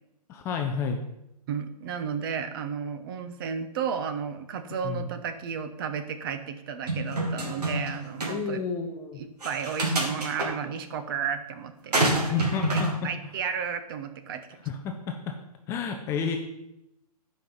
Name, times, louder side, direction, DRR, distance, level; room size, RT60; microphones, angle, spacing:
voice 1, 0.3-1.0 4.8-5.1 8.3-9.2 12.3-12.9 14.7-15.3 15.7-16.4, left 6 dB, 15° left, 4 dB, 0.5 m, -30 dB
voice 2, 1.5-8.6 9.2-11.9 12.3-14.6, right 7 dB, 35° right, 9 dB, 0.9 m, -33 dB
sound 1, 6.9-7.9 8.2-8.3 9.4-10.5 11.9-12.9, right 2 dB, 80° right, 2.7 m, -26 dB
10.5 x 5.4 x 5.6 m, 0.85 s
hypercardioid pair, 150°, 20 cm